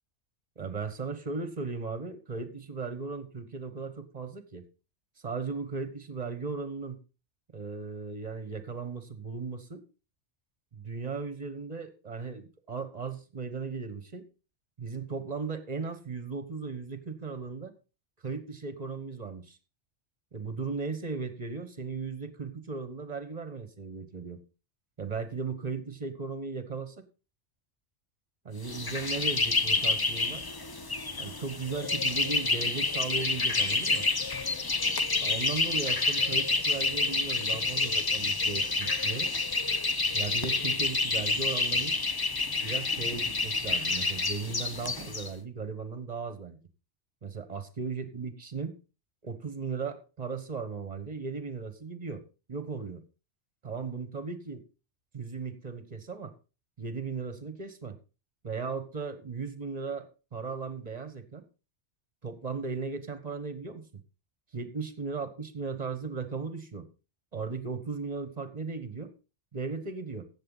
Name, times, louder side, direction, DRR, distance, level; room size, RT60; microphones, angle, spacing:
voice 1, 0.6-4.6 5.2-7.0 7.5-9.8 10.7-14.2 14.8-17.7 18.2-19.6 20.3-24.4 25.0-27.0 28.4-30.4 31.2-34.1 35.2-39.3 40.1-42.0 42.6-46.6 47.2-48.7 49.2-52.2 52.5-53.0 53.6-54.6 55.1-56.3 56.8-58.0 58.4-61.4 62.2-63.9 64.5-66.9 67.3-69.1 69.5-70.3, right 4 dB, 35° right, 11 dB, 1.3 m, -37 dB
sound 1, 28.6-45.3, left 3 dB, 25° left, 0.6 m, -28 dB
15.5 x 7.3 x 3.9 m, 0.32 s
omnidirectional pair, 1.2 m